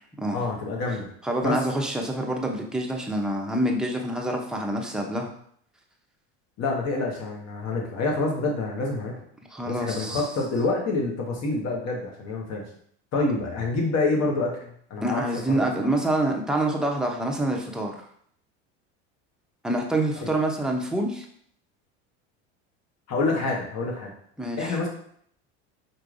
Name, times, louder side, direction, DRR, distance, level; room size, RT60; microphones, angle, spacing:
voice 1, 0.3-1.1 1.4-1.6 6.6-9.1 9.6-12.6 13.1-15.9 20.2-20.3 23.1-24.1 24.6-24.9, left 3 dB, 45° left, -1 dB, 1.4 m, -27 dB
voice 2, 1.2-5.3 9.5-10.2 15.0-18.0 19.6-21.3 24.4-24.8, right 1 dB, ahead, 0 dB, 0.6 m, -26 dB
4.6 x 3.3 x 2.5 m, 0.65 s
supercardioid pair, 100°, 36 cm